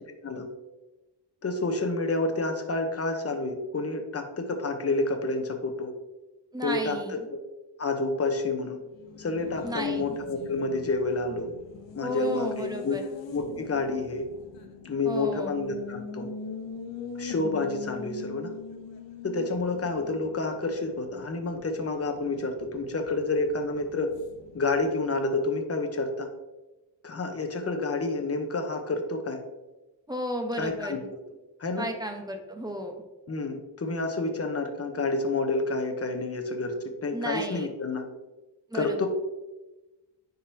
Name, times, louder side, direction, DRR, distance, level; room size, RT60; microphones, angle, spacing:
voice 1, 1.4-5.9 6.6-7.4 7.8-8.8 9.2-11.5 11.9-13.0 13.3-14.3 14.8-16.3 17.2-18.5 19.2-24.1 24.5-26.3 27.0-29.4 30.6-31.0 31.6-31.9 33.3-36.7 37.0-38.0 38.7-39.1, left 3 dB, 35° left, 5 dB, 1.0 m, -29 dB
voice 2, 6.5-7.2 9.6-10.2 12.0-13.0 15.0-15.5 30.1-31.1 31.8-32.9 37.1-37.7 38.7-39.1, equal, 10° right, 4 dB, 1.0 m, -33 dB
Race car auto racing, 8.8-25.1, left 5 dB, 90° left, 0.8 m, -43 dB
9.8 x 4.0 x 2.8 m, 1.1 s
cardioid pair, 90°, 43 cm